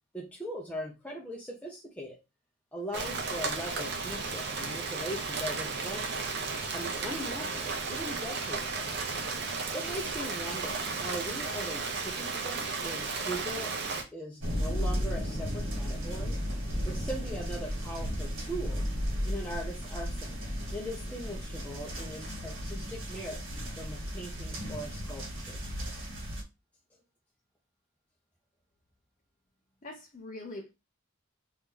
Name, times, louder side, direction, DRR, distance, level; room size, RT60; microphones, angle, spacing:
voice 1, 0.1-2.2 2.7-6.2 6.7-8.9 9.7-13.7 14.1-16.4 16.9-18.8 19.2-20.4 20.7-23.4 23.8-25.6, equal, 5° left, 0.7 m, -40 dB
Rain, 2.9-14.0, right 4 dB, 60° right, 0.7 m, -34 dB
sound 1, 14.4-26.4, equal, 75° right, 1.6 m, -34 dB
voice 2, 29.8-30.7, left 2 dB, 40° left, 0.5 m, -43 dB
3.1 x 2.6 x 3.6 m
head